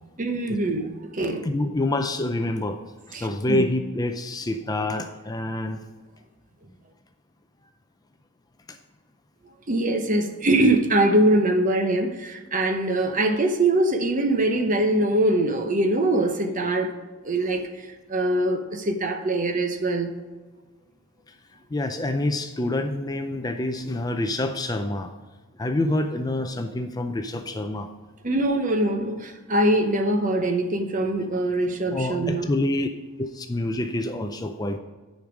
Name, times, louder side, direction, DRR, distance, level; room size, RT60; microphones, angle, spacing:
voice 1, 0.2-1.5 3.1-3.6 9.7-17.0 17.2-20.1 28.2-32.5, right 1 dB, 40° right, 0.8 m, -23 dB
voice 2, 1.4-2.8 3.1-5.8 8.7-8.8 21.3-21.4 21.7-25.1 25.6-27.9 31.9-32.9 33.2-34.8, left 1 dB, 20° left, 0.4 m, -27 dB
10.0 x 5.3 x 5.1 m
head